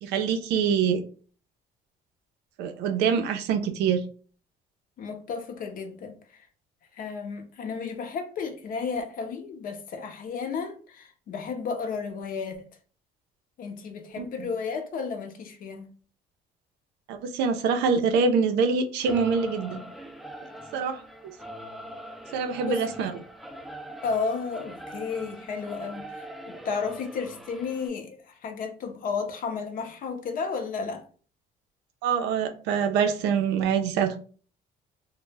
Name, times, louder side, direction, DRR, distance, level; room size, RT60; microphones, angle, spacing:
voice 1, 0.0-1.0 2.6-4.0 14.2-14.5 17.1-19.8 20.7-21.0 22.3-23.1 32.0-34.2, right 6 dB, 85° right, 0.4 m, -25 dB
voice 2, 5.0-6.5 6.9-12.7 13.6-15.9 22.6-23.1 24.0-31.0, left 5 dB, 55° left, 0.5 m, -33 dB
Singing / Musical instrument, 19.0-27.9, right 1 dB, ahead, 0.3 m, -42 dB
2.1 x 2.0 x 3.2 m
cardioid pair, 110°, 17 cm